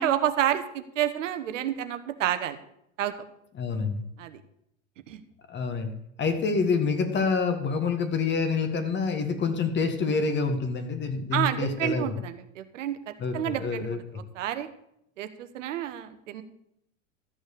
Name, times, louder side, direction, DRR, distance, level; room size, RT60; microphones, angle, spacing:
voice 1, 0.0-2.6 3.0-3.1 4.2-4.4 5.1-5.2 11.3-14.7 15.2-16.4, right 11 dB, 70° right, 10 dB, 1.1 m, -29 dB
voice 2, 3.6-4.0 5.5-5.9 6.2-12.1 13.2-14.0, left 4 dB, 30° left, 7 dB, 1.8 m, -27 dB
13.5 x 6.5 x 6.7 m, 0.77 s
hypercardioid pair, 95°, 39 cm